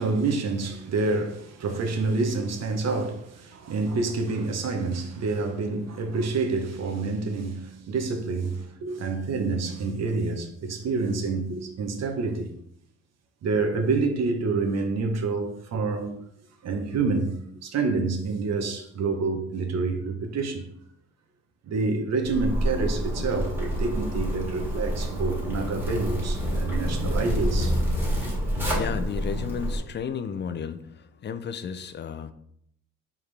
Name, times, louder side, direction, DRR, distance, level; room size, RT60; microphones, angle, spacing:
voice 1, 0.0-12.5 13.4-16.2 16.6-20.7 21.6-27.8, right 3 dB, 60° right, 0.9 m, -28 dB
Zipper (clothing), 22.2-29.8, equal, 5° right, 1.7 m, -28 dB
voice 2, 28.1-32.3, left 7 dB, 35° left, 0.4 m, -34 dB
4.5 x 3.6 x 3.3 m
cardioid pair, 90°, 30 cm